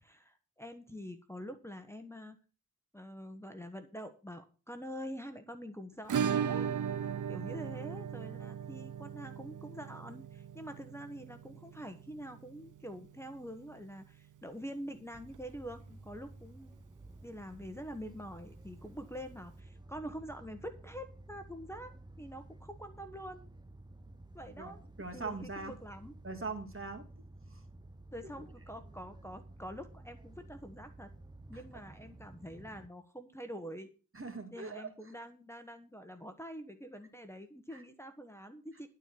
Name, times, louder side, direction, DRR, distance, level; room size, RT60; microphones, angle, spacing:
voice 1, 0.0-2.4 2.9-6.7 7.3-16.7 17.2-21.9 22.2-23.5 24.3-24.8 25.1-26.1 28.1-31.1 31.5-33.9 34.5-38.9, equal, 10° left, 6 dB, 1.3 m, -46 dB
Acoustic guitar / Strum, 6.1-14.7 14.9-15.0 15.3-15.4 15.8-15.9 17.9-18.0 19.2-19.3, right 8 dB, 65° right, 0.6 m, -38 dB
sound 1, 15.1-32.9, right 2 dB, 15° right, 0.7 m, -53 dB
voice 2, 24.4-25.7 26.2-27.1 27.5-27.6 28.2-28.3 31.5-31.6 34.1-34.9 37.7-37.8, right 3 dB, 40° right, 5 dB, 2.3 m, -42 dB
11.5 x 4.6 x 8.3 m, 0.36 s
cardioid pair, 55°, 33 cm